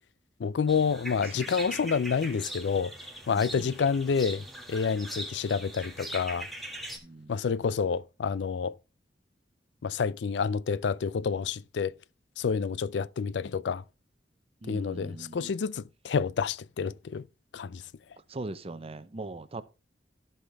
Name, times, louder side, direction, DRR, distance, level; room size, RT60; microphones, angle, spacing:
voice 1, 0.4-2.9 3.3-6.5 7.3-8.7 9.8-11.9 12.4-13.8 14.7-17.2 17.5-17.8, left 5 dB, 90° left, 0.4 m, -29 dB
sound 1, 0.7-7.0, right 1 dB, ahead, 2.0 m, -41 dB
voice 2, 3.3-3.7 7.0-7.3 14.6-15.5 18.3-19.6, right 2 dB, 35° right, 0.7 m, -41 dB
14.5 x 5.8 x 3.4 m
head